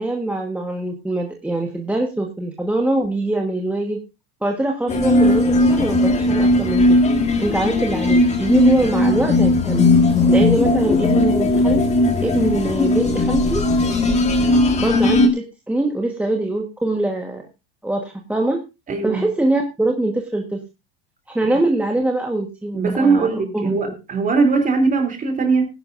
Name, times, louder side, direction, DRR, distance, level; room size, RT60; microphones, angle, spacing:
voice 1, 0.0-4.0 4.4-6.8 7.4-9.8 10.3-11.8 12.2-13.7 14.8-17.4 17.8-18.6 19.0-20.6 21.3-23.3 23.5-23.8, right 2 dB, 5° right, 2 dB, 1.4 m, -23 dB
sound 1, 4.9-15.3, left 2 dB, 20° left, 1.9 m, -17 dB
voice 2, 18.9-19.2 22.7-25.7, right 4 dB, 25° right, 6 dB, 3.2 m, -20 dB
17.5 x 11.0 x 2.6 m, 0.26 s
supercardioid pair, 120°, 31 cm